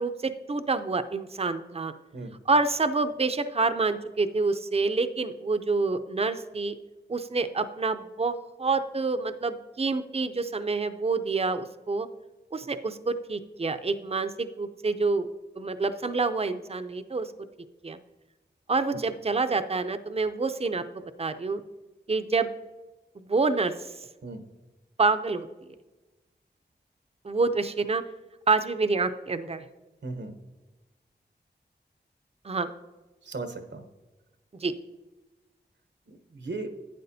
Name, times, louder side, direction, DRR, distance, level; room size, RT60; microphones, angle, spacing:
voice 1, 0.0-1.9 2.5-6.7 7.1-12.1 12.5-15.3 15.6-17.3 17.8-18.0 18.7-20.8 21.2-21.6 22.1-22.5 23.3-23.7 25.0-25.5 27.2-28.0 28.5-29.6 32.4-32.7 34.6-34.8, right 3 dB, 35° right, 10 dB, 0.5 m, -27 dB
voice 2, 30.0-30.4 33.2-33.9 36.1-36.8, right 3 dB, 80° right, 7 dB, 1.0 m, -37 dB
12.0 x 9.0 x 2.7 m, 1.1 s
wide cardioid pair, 70°, 18 cm